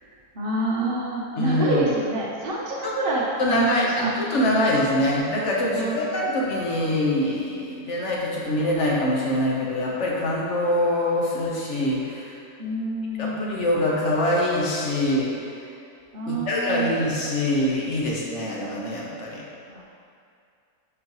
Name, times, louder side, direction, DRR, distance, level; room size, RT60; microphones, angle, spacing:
voice 1, 0.3-4.1 5.8-6.1 12.6-13.7 16.1-17.0 19.7-19.8, right 2 dB, 45° right, -5 dB, 0.8 m, -27 dB
voice 2, 1.4-1.8 2.8-2.9 3.4-12.4 13.2-15.3 16.3-19.4, left 1 dB, 50° left, -3 dB, 1.3 m, -24 dB
8.1 x 5.4 x 3.1 m, 2.4 s
omnidirectional pair, 1.7 m